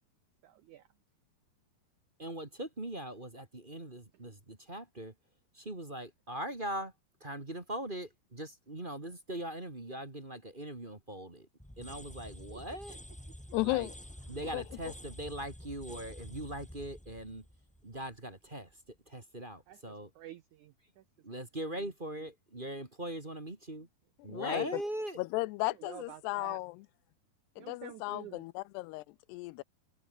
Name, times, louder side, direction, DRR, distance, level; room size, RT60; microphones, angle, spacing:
voice 1, 0.4-0.9 12.5-12.8 19.7-21.0 21.7-21.9 25.6-26.6 27.6-28.5, right 13 dB, 80° right, 1.7 m, -50 dB
voice 2, 2.2-5.1 5.5-6.9 7.2-11.5 11.8-13.0 13.6-13.9 14.3-17.5 17.8-20.1 21.2-23.9 24.2-25.2, right 1 dB, 15° right, 1.8 m, -41 dB
sound 1, 11.6-18.5, equal, ahead, 3.7 m, -49 dB
voice 3, 13.5-13.9 14.5-14.6 24.3-24.8 25.2-26.8 27.6-29.0 29.3-29.6, left 21 dB, 85° left, 2.7 m, -34 dB
omnidirectional pair, 4.7 m